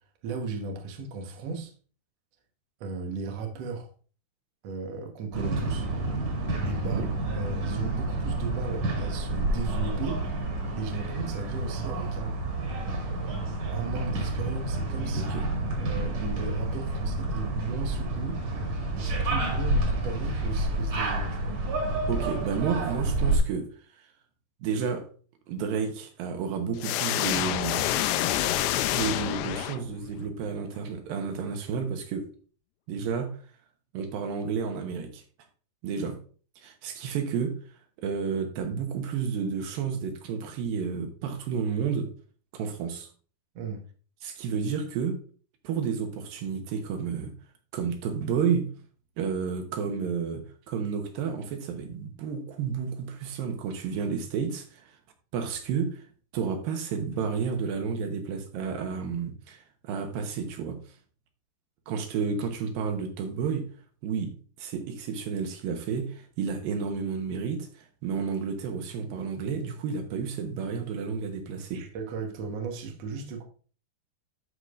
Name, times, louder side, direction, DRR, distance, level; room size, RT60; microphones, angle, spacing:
voice 1, 0.2-1.7 2.8-3.9 4.6-5.9 6.6-7.0 7.3-10.2 10.8-12.4 13.7-15.3 15.8-18.4 19.0-21.6 43.5-43.8 71.7-73.4, right 4 dB, 90° right, 1.4 m, -36 dB
sound 1, 5.3-23.4, right 2 dB, 50° right, 2.4 m, -29 dB
voice 2, 15.1-15.5 22.1-23.7 24.6-25.1 25.5-27.9 28.9-32.3 32.9-33.3 33.9-35.2 35.8-36.2 36.6-37.6 38.0-42.1 42.5-43.1 44.2-45.2 45.6-47.3 47.7-48.7 49.2-55.0 55.3-56.0 56.3-60.8 61.9-63.7 64.0-71.8, right 6 dB, 70° right, 2.4 m, -31 dB
sound 2, 26.8-30.2, left 13 dB, 80° left, 2.6 m, -27 dB
13.0 x 4.9 x 2.5 m
omnidirectional pair, 4.9 m